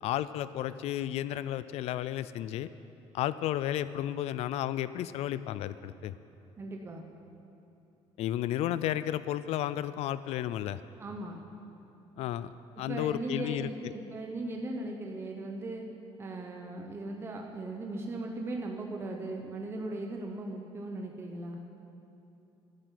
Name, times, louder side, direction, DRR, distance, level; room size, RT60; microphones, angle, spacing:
voice 1, 0.0-2.7 3.1-6.1 8.2-10.8 12.2-12.5 12.8-13.9, left 12 dB, 65° left, 15 dB, 0.4 m, -33 dB
voice 2, 6.6-7.0 11.0-11.4 12.9-15.9 16.2-21.6, right 2 dB, 20° right, 2 dB, 0.8 m, -38 dB
12.0 x 7.6 x 9.1 m, 2.9 s
cardioid pair, 165°, 11 cm